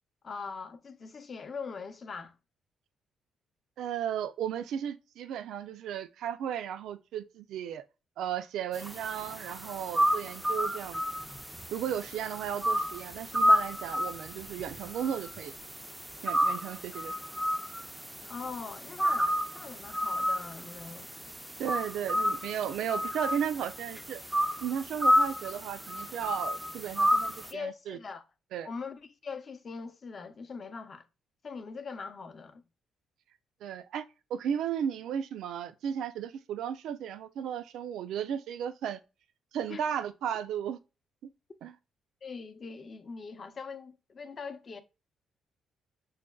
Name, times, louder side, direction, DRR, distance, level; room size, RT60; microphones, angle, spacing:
voice 1, 0.2-2.4 18.3-21.1 27.5-28.2 28.6-31.1 31.4-32.6 39.7-39.8 42.2-44.8, left 5 dB, 45° left, 0.6 m, -41 dB
voice 2, 3.8-7.8 8.2-11.0 11.7-15.5 16.2-17.1 21.6-24.2 24.6-28.0 28.5-28.7 33.6-34.0 34.3-39.0 39.5-40.8 41.6-41.7, right 9 dB, 80° right, 0.4 m, -35 dB
sound 1, 8.7-27.5, equal, 5° right, 0.3 m, -31 dB
6.3 x 2.2 x 2.2 m
cardioid pair, 90°, 0 cm